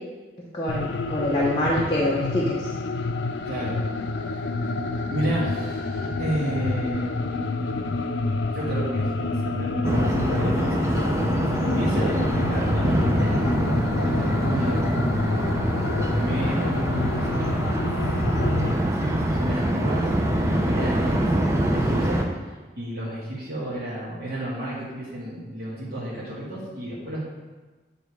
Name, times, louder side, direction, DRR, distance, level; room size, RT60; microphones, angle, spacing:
voice 1, 0.5-2.5, equal, 25° left, -7 dB, 0.9 m, -25 dB
sound 1, 0.7-18.7, left 3 dB, 80° left, 0.5 m, -28 dB
voice 2, 3.4-3.8 4.1-4.7 5.1-8.0 8.5-10.9 11.5-14.9 16.0-17.8 18.6-22.2 22.7-27.2, right 1 dB, 55° right, -9 dB, 1.7 m, -32 dB
sound 2, 9.8-22.3, right 1 dB, 15° right, 0.6 m, -24 dB
8.7 x 3.9 x 4.7 m, 1.3 s
head